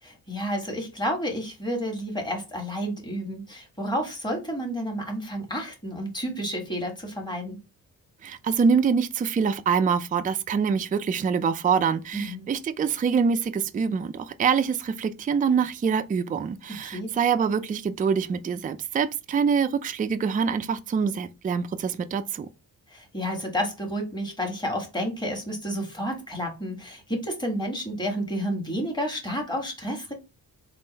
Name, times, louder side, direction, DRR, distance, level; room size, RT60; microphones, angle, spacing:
voice 1, 0.0-7.6 12.1-12.5 16.8-17.2 22.9-30.1, equal, 10° left, 1.5 m, -30 dB
voice 2, 8.2-22.5, right 6 dB, 25° right, 0.3 m, -25 dB
3.7 x 2.5 x 4.0 m
cardioid pair, 90°, 35 cm